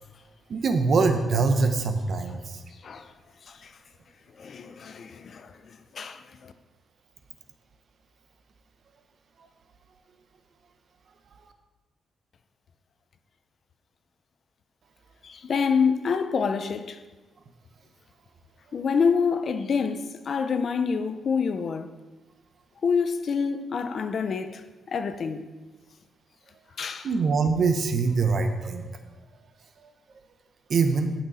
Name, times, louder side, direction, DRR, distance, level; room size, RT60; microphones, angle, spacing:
voice 1, 0.5-2.6 27.0-29.0 30.7-31.1, right 4 dB, 45° right, 0.9 m, -23 dB
voice 2, 4.4-6.5 15.2-17.0 18.7-21.9 22.8-25.4 26.8-27.1, left 5 dB, 45° left, 0.6 m, -27 dB
13.5 x 6.1 x 4.2 m
wide cardioid pair, 165°, 0 cm